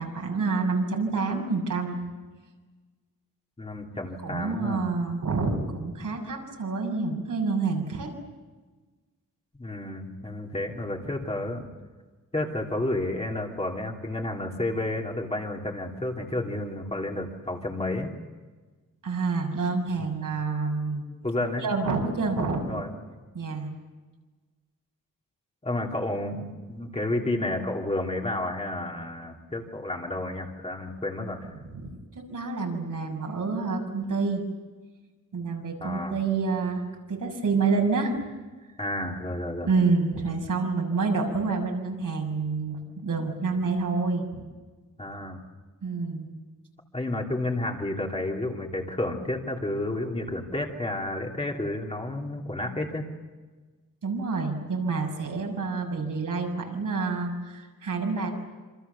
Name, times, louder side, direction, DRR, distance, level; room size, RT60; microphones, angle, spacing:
voice 1, 0.0-2.0 4.2-8.1 19.0-21.0 21.6-22.8 23.3-23.7 31.7-34.4 35.3-36.8 37.1-38.2 39.6-44.4 45.8-46.3 54.0-58.3, right 4 dB, 70° right, 1 dB, 6.9 m, -28 dB
voice 2, 3.6-4.8 9.5-11.7 12.3-18.2 21.2-21.6 22.7-22.9 25.6-31.5 35.8-36.2 38.8-39.7 45.0-45.4 46.9-53.1, left 1 dB, 20° left, 0 dB, 3.1 m, -31 dB
27.5 x 27.0 x 7.1 m, 1.3 s
wide cardioid pair, 170°, 33 cm